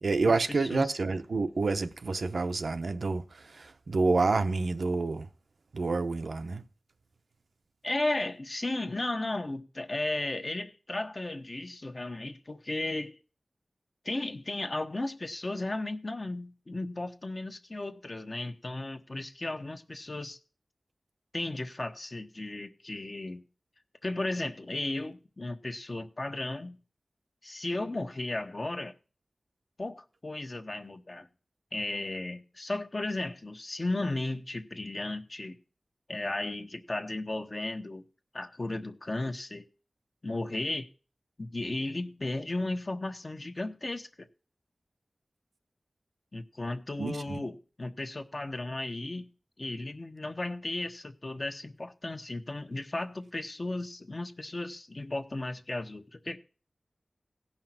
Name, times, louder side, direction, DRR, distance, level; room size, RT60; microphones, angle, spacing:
voice 1, 0.0-5.3 5.7-6.6 47.0-47.4, right 3 dB, 80° right, 0.8 m, -28 dB
voice 2, 7.8-13.2 14.0-20.4 21.3-23.4 24.0-26.8 27.4-28.9 29.8-31.3 31.7-35.6 36.1-38.0 38.3-39.6 40.2-40.9 41.4-44.3 46.3-49.3 49.6-56.4, left 2 dB, 45° left, 1.1 m, -35 dB
16.5 x 5.7 x 5.9 m
wide cardioid pair, 65°, 0 cm